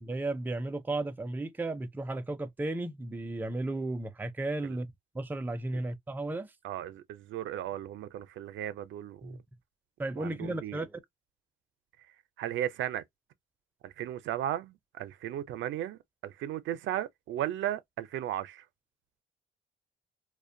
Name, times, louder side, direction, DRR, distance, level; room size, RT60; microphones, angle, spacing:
voice 1, 0.0-6.5 9.2-9.4 10.0-11.0, right 2 dB, 10° right, 0.4 m, -34 dB
voice 2, 6.6-9.4 10.2-10.8 12.4-13.0 13.8-18.6, right 12 dB, 75° right, 0.4 m, -36 dB
2.4 x 2.1 x 2.5 m
cardioid pair, 90°, 20 cm